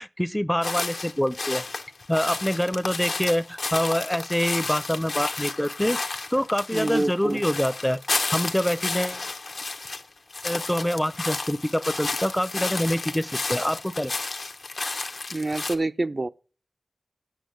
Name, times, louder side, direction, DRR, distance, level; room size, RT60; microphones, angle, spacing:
voice 1, 0.0-1.6 2.1-6.0 6.3-8.0 8.3-9.2 10.4-14.1, equal, 10° left, 0.5 m, -25 dB
sound 1, 0.6-10.0 10.3-15.7, left 3 dB, 80° left, 0.8 m, -32 dB
voice 2, 6.7-7.4 15.3-16.3, right 2 dB, 50° right, 0.4 m, -26 dB
8.4 x 6.2 x 7.8 m
cardioid pair, 40°, 0 cm